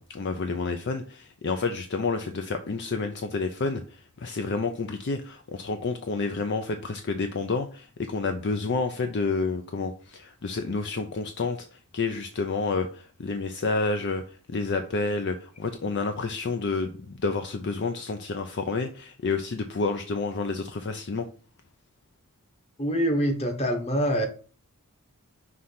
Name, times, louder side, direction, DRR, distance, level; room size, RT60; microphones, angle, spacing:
voice 1, 0.0-21.3, left 3 dB, 50° left, 0.5 m, -29 dB
voice 2, 22.8-24.3, equal, 30° left, 1.2 m, -25 dB
5.8 x 3.2 x 5.6 m
head